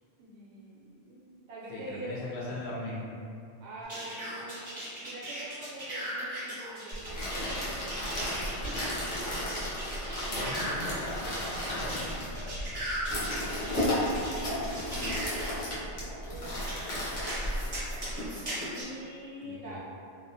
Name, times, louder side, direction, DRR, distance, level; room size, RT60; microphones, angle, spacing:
voice 1, 0.2-2.4 3.6-4.6 5.0-9.7 13.1-16.6 16.9-17.2 18.7-19.8, right 1 dB, 70° right, -5 dB, 0.9 m, -45 dB
voice 2, 1.7-3.0 10.3-12.6 19.4-19.8, left 1 dB, 70° left, -6 dB, 0.8 m, -39 dB
sound 1, 3.9-15.5 16.7-18.8, right 1 dB, 35° right, 0.6 m, -38 dB
sound 2, 6.9-18.3, equal, 85° left, 1.1 m, -34 dB
2.6 x 2.0 x 2.6 m, 2.4 s
omnidirectional pair, 1.2 m